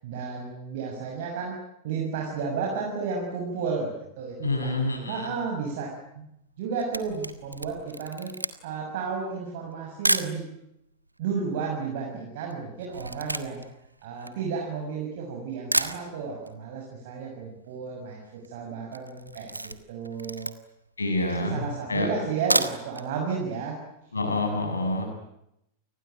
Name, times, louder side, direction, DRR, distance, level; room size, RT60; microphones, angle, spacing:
voice 1, 0.0-1.5 1.8-4.7 5.1-5.9 6.1-6.3 6.6-8.3 8.6-10.4 11.2-13.7 14.0-20.5 21.4-23.8, right 5 dB, 55° right, -1 dB, 6.7 m, -32 dB
voice 2, 4.4-5.3 21.0-22.1 24.1-25.1, left 2 dB, 75° left, 4 dB, 7.7 m, -27 dB
Camera, 6.5-10.4 11.1-11.2 11.3-15.0 15.4-15.5 15.7-16.6 16.8-16.9 17.2-17.3 17.5-17.9 18.3-18.5 18.9-20.9 21.4-21.5 22.3-23.1 23.4-23.5 23.9-24.0, right 1 dB, 85° right, 1.4 m, -31 dB
29.0 x 20.0 x 9.3 m, 0.82 s
figure-of-eight pair, 90°, 0 cm